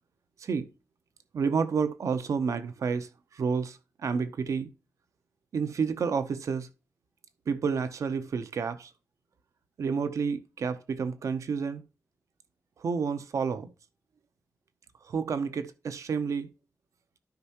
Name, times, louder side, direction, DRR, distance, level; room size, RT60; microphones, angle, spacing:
voice 1, 1.3-4.7 5.5-6.7 7.5-8.9 9.8-11.8 12.8-13.7 15.0-16.5, right 5 dB, 80° right, 0.7 m, -30 dB
12.0 x 5.5 x 2.9 m
wide cardioid pair, 135°, 5 cm